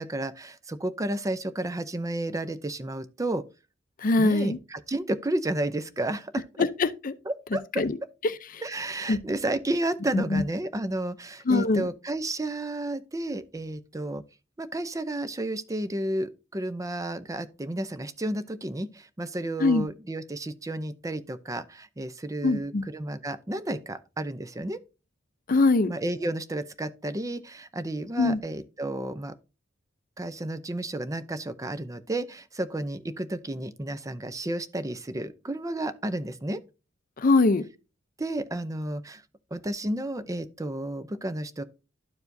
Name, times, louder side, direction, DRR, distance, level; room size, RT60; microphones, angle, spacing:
voice 1, 0.0-3.4 4.2-6.4 7.3-7.6 8.6-14.2 14.6-24.8 25.9-29.3 30.2-36.6 38.2-39.2 39.5-41.6, right 1 dB, 15° right, 0.5 m, -32 dB
voice 2, 4.0-4.6 6.8-7.1 7.8-7.9 9.1-9.2 10.1-10.4 11.5-11.9 19.6-19.9 22.4-22.8 25.5-25.9 28.2-28.4 37.2-37.6, left 3 dB, 45° left, 0.6 m, -22 dB
12.0 x 4.8 x 2.6 m
head